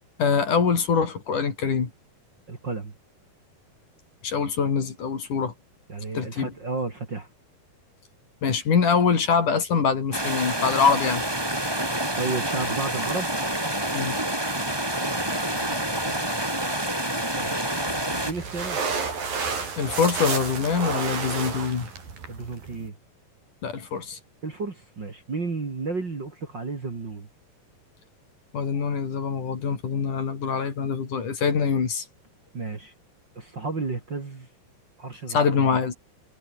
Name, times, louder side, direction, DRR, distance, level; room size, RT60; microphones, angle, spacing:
voice 1, 0.2-1.9 4.2-5.5 6.1-6.5 8.4-11.2 13.9-14.2 19.8-21.9 23.6-24.2 28.5-32.1 35.3-35.9, left 6 dB, 55° left, 4.9 m, -24 dB
voice 2, 2.5-2.9 5.9-7.3 12.2-13.3 15.2-16.3 17.2-17.6 18.2-18.8 22.3-23.0 24.4-27.3 32.5-32.9 33.3-34.5 35.0-35.7, right 3 dB, 30° right, 3.2 m, -33 dB
sound 1, 10.1-18.3, right 1 dB, 5° right, 3.3 m, -27 dB
sound 2, 17.9-22.9, right 5 dB, 65° right, 7.2 m, -31 dB
omnidirectional pair, 4.3 m